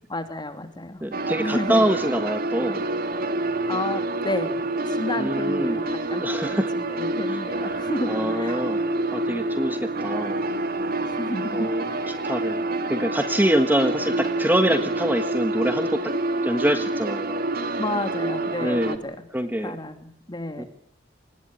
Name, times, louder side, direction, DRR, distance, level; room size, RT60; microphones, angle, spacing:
voice 1, 0.1-1.0 1.4-1.8 3.7-4.6 4.9-8.1 8.4-8.6 11.1-12.0 17.8-19.2 19.6-20.7, left 1 dB, 25° left, 8 dB, 2.9 m, -31 dB
voice 2, 1.0-2.8 5.2-5.8 6.2-6.7 7.3-7.8 8.1-8.8 9.1-10.4 11.5-16.0 16.4-17.4 18.6-19.0 19.3-19.8 20.6-20.7, right 1 dB, 10° right, 8 dB, 1.5 m, -25 dB
sound 1, 1.1-19.0, right 2 dB, 50° right, 2.2 m, -27 dB
24.5 x 20.5 x 8.7 m, 0.67 s
head